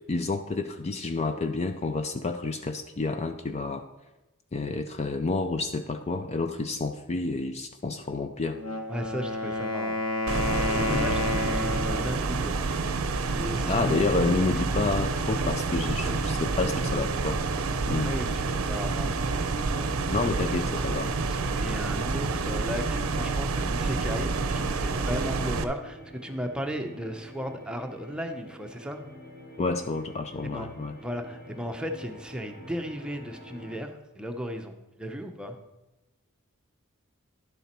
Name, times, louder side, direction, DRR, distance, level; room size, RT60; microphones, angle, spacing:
voice 1, 0.1-3.8 4.5-8.6 10.9-11.2 13.7-17.4 17.9-18.2 20.1-21.1 29.6-31.0, left 3 dB, 30° left, 8 dB, 0.4 m, -29 dB
Wind instrument woodwind instrument, 8.5-12.3, left 2 dB, 90° left, 1.1 m, -30 dB
voice 2, 8.9-10.0 10.5-12.7 13.3-14.1 14.5-14.7 16.1-16.2 18.0-19.3 19.7-19.9 21.3-29.0 30.4-30.7 31.0-35.6, equal, 5° right, 4 dB, 0.7 m, -36 dB
sound 1, 10.3-25.6, right 3 dB, 70° right, 0.6 m, -28 dB
sound 2, 15.9-33.8, equal, 45° left, 1.3 m, -49 dB
11.5 x 7.0 x 4.4 m, 1.0 s
head